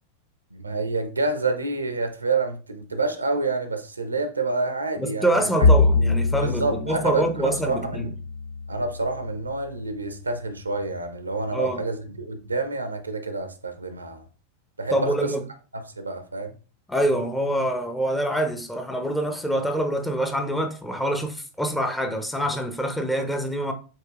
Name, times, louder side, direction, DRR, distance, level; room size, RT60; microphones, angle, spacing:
voice 1, 0.5-5.7 6.4-8.1 8.7-14.2 14.8-15.3 15.7-16.5, right 3 dB, 80° right, 0.7 m, -28 dB
voice 2, 5.0-8.1 11.5-11.8 14.9-15.4 16.9-23.7, right 1 dB, 5° left, 0.7 m, -25 dB
Bowed string instrument, 5.6-10.0, left 3 dB, 55° left, 0.4 m, -24 dB
7.2 x 2.8 x 2.4 m
figure-of-eight pair, 90°, 0 cm